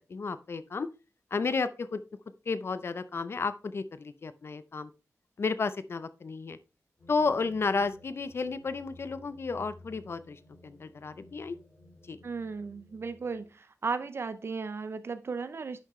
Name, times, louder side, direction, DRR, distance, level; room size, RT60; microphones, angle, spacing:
voice 1, 0.1-0.9 1.3-2.0 2.5-4.9 5.4-6.6 7.1-11.6 12.1-12.2, left 4 dB, 45° left, 0.5 m, -32 dB
sound 1, 7.0-13.5, left 2 dB, 25° left, 5.5 m, -55 dB
voice 2, 12.2-15.8, right 4 dB, 45° right, 0.5 m, -35 dB
10.0 x 7.4 x 3.1 m
wide cardioid pair, 175°, 6 cm